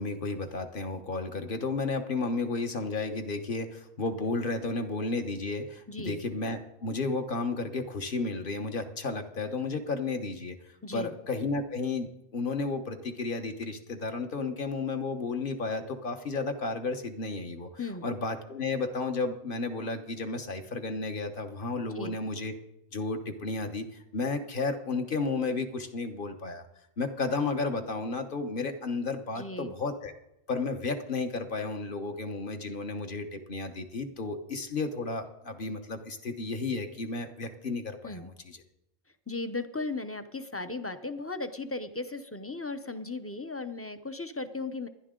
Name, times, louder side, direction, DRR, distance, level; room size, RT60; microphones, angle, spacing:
voice 1, 0.0-22.5 22.9-26.6 27.0-30.1 30.5-38.6, left 3 dB, 50° left, 5 dB, 1.2 m, -33 dB
voice 2, 5.9-6.2 10.8-11.1 17.8-18.1 21.9-22.2 29.3-29.7 38.0-38.3 39.3-44.9, left 3 dB, 15° left, 9 dB, 0.5 m, -36 dB
28.5 x 10.5 x 3.8 m, 0.90 s
omnidirectional pair, 1.2 m